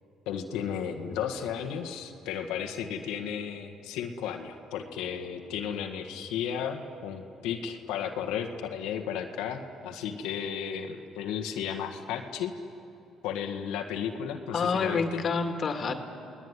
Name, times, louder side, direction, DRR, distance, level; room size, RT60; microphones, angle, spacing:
voice 1, 0.2-12.5 13.2-15.2, left 8 dB, 90° left, 4 dB, 1.7 m, -34 dB
voice 2, 14.5-16.0, left 5 dB, 45° left, 6 dB, 2.3 m, -28 dB
29.0 x 19.0 x 9.9 m, 2.7 s
cardioid pair, 100°, 0 cm